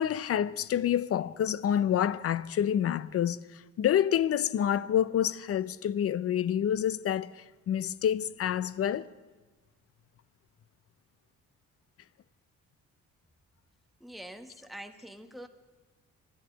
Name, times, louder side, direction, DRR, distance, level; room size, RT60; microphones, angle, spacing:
voice 1, 0.0-9.1, left 10 dB, 50° left, 0.5 m, -28 dB
voice 2, 14.0-15.5, right 1 dB, ahead, 1.0 m, -45 dB
11.0 x 11.0 x 8.9 m
cardioid pair, 90°, 30 cm